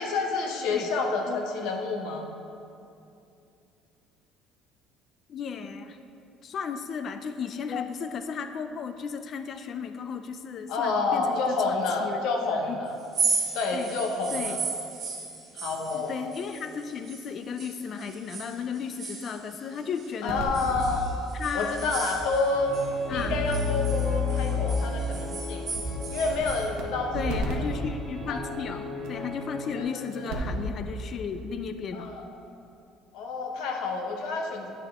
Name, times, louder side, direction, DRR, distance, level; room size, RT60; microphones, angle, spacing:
voice 1, 0.0-2.3 10.7-12.9 13.5-14.7 15.5-16.1 20.2-21.0 21.5-25.7 26.1-27.4 28.3-28.4 29.7-30.4 31.9-32.2 33.1-34.7, left 3 dB, 70° left, 2 dB, 1.0 m, -29 dB
voice 2, 5.3-6.0 6.4-12.9 13.7-13.9 14.3-14.6 15.9-20.4 21.3-21.9 23.1-23.4 27.1-32.1, left 6 dB, 35° left, 8 dB, 0.3 m, -35 dB
sound 1, 13.0-17.3 17.6-20.1 20.5-22.9 23.2-26.7, right 5 dB, 35° right, 1.0 m, -35 dB
sound 2, 20.3-21.0 21.7-21.8 22.1-22.2 23.1-24.8 25.7-25.8 26.3-26.8 27.1-27.5 29.0-29.1 30.1-30.6 30.9-31.0, left 3 dB, 85° right, 1.2 m, -29 dB
sound 3, 22.5-29.8, left 2 dB, 10° right, 1.2 m, -38 dB
9.6 x 6.4 x 3.6 m, 2.6 s
cardioid pair, 165°, 0 cm